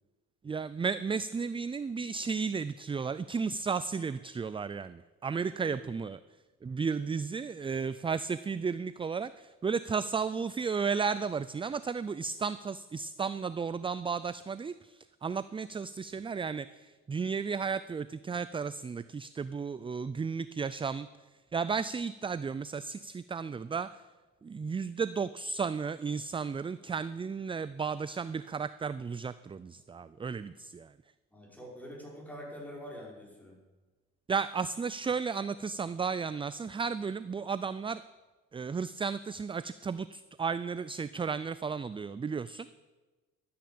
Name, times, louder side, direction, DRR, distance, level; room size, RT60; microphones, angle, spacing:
voice 1, 0.4-6.2 6.6-24.0 24.4-30.9 34.3-38.0 38.5-42.7, right 5 dB, 20° right, 15 dB, 0.3 m, -34 dB
voice 2, 5.6-5.9 31.3-33.6, equal, 5° left, -2 dB, 5.3 m, -45 dB
12.5 x 9.5 x 8.5 m, 1.2 s
cardioid pair, 90°, 30 cm